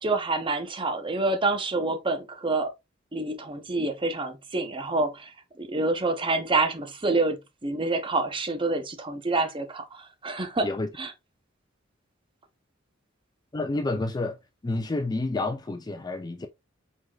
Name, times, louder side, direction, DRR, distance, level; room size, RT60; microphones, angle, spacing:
voice 1, 0.0-2.7 3.1-10.7 11.0-11.1, right 3 dB, 25° right, 0.7 m, -27 dB
voice 2, 13.5-16.5, left 2 dB, 20° left, 0.4 m, -29 dB
4.6 x 4.1 x 2.3 m
head